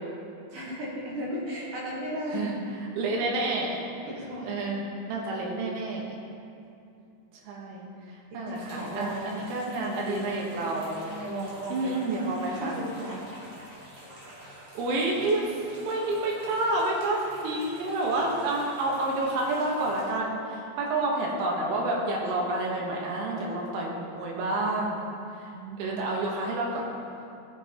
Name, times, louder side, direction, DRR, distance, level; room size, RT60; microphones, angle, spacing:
voice 1, 0.5-2.5 4.1-4.5 8.1-8.4 8.7-9.4 9.8-10.4 11.0-12.2 12.6-13.2 17.4-17.5 25.5-26.0, right 1 dB, 65° right, -5 dB, 2.1 m, -36 dB
voice 2, 3.0-3.8 4.4-4.8 5.1-6.0 7.5-7.9 8.3-10.9 11.7-12.8 14.8-25.1 25.4-25.5 25.8-26.8, right 2 dB, 85° right, -2 dB, 3.6 m, -29 dB
sound 1, 8.5-20.0, equal, 35° right, 2.8 m, -47 dB
15.5 x 7.9 x 2.9 m, 2.6 s
omnidirectional pair, 5.3 m